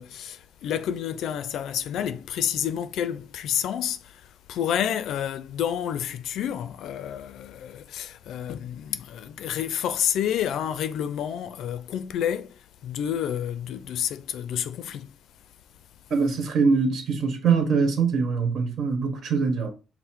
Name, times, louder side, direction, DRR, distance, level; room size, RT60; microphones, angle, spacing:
voice 1, 0.0-15.1, left 9 dB, 80° left, 0.4 m, -29 dB
voice 2, 16.1-19.7, right 5 dB, 65° right, 1.2 m, -23 dB
5.5 x 2.0 x 4.5 m
cardioid pair, 90°, 0 cm